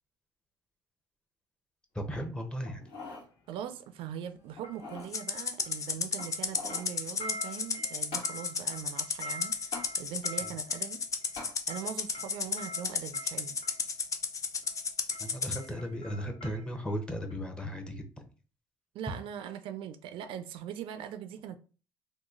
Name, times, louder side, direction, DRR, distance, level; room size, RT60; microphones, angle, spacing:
voice 1, 1.9-2.8 10.4-10.5 15.2-18.0, equal, 10° left, 0.8 m, -36 dB
sound 1, 2.7-3.3 3.7-3.8 4.6-5.1 6.1-6.9 8.1-8.3 9.7-9.9 11.4-11.6 12.2-12.3, left 3 dB, 75° left, 1.4 m, -43 dB
sound 2, 2.8-2.9 4.6-5.9 6.2-13.9 14.6-14.8 15.1-17.0 17.3-17.4, left 1 dB, 60° left, 1.6 m, -46 dB
voice 2, 3.5-11.0 11.7-13.6 18.9-21.6, right 9 dB, 70° right, 0.4 m, -41 dB
Rattle (instrument), 5.1-15.6, left 5 dB, 35° left, 0.5 m, -33 dB
3.0 x 2.3 x 3.6 m
supercardioid pair, 85°, 9 cm